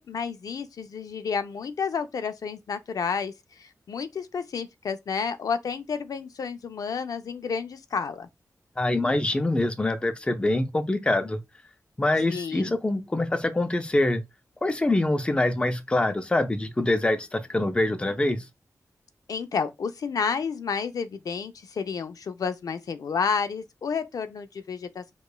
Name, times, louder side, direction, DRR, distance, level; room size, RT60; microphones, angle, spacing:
voice 1, 0.0-8.3 12.3-12.7 19.3-25.1, left 6 dB, 75° left, 0.4 m, -31 dB
voice 2, 8.8-11.4 12.0-14.2 14.6-18.4, left 2 dB, 15° left, 0.4 m, -25 dB
4.8 x 2.3 x 2.2 m
wide cardioid pair, 140°, 6 cm